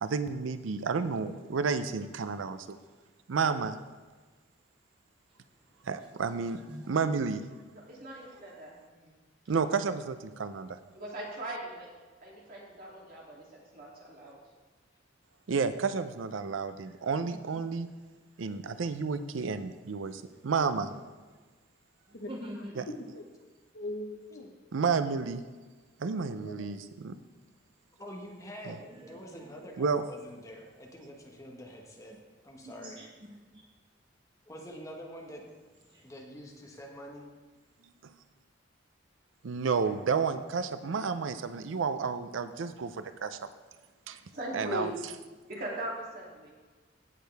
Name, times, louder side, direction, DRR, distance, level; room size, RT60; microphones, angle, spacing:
voice 1, 0.0-2.8 3.3-3.8 5.8-7.4 9.5-10.8 15.5-17.9 18.4-20.9 22.8-22.9 24.7-25.4 26.0-27.2 28.7-28.8 29.8-30.0 38.0-38.1 39.4-43.4 44.1-44.2 44.5-44.9, right 5 dB, 85° right, 11 dB, 0.5 m, -31 dB
voice 2, 5.3-5.6 6.3-6.4 6.7-6.9 17.3-17.4 20.7-21.0 22.1-22.8 28.1-28.2 28.8-29.6 32.1-32.2 32.6-33.6 35.9-36.1, right 1 dB, 25° right, 1 dB, 0.7 m, -47 dB
voice 3, 7.7-9.1 10.9-11.9 12.2-14.4 44.3-44.9 45.5-46.5, right 1 dB, 50° right, -4 dB, 2.7 m, -40 dB
voice 4, 22.1-23.2 23.7-24.5 26.4-26.9, left 1 dB, 65° left, 4 dB, 1.1 m, -41 dB
voice 5, 28.0-32.2 32.4-33.0 34.5-35.5 36.0-37.3, equal, 15° left, 0 dB, 1.4 m, -46 dB
16.0 x 6.5 x 3.4 m, 1.3 s
head